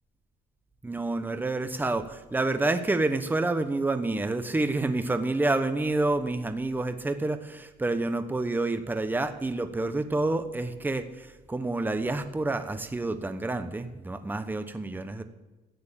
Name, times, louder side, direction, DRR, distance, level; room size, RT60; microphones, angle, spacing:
voice 1, 0.8-15.2, right 2 dB, 10° right, 9 dB, 1.0 m, -28 dB
14.0 x 9.6 x 7.0 m, 1.1 s
cardioid pair, 110°, 17 cm